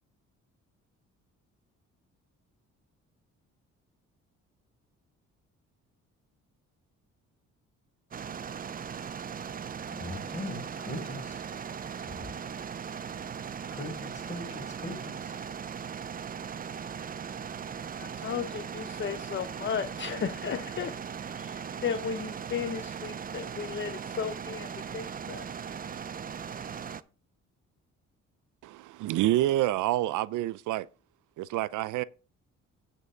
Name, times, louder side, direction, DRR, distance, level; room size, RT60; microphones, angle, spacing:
sound 1, 8.1-27.0, right 7 dB, 30° right, 0.5 m, -39 dB
voice 1, 9.9-11.4 13.7-15.4, left 1 dB, 25° left, 5.5 m, -40 dB
voice 2, 18.0-21.0 21.3-25.5, left 7 dB, 40° left, 0.7 m, -35 dB
voice 3, 28.6-30.9 31.4-32.0, right 15 dB, 80° right, 0.5 m, -28 dB
8.9 x 4.7 x 5.3 m
cardioid pair, 90°, 30 cm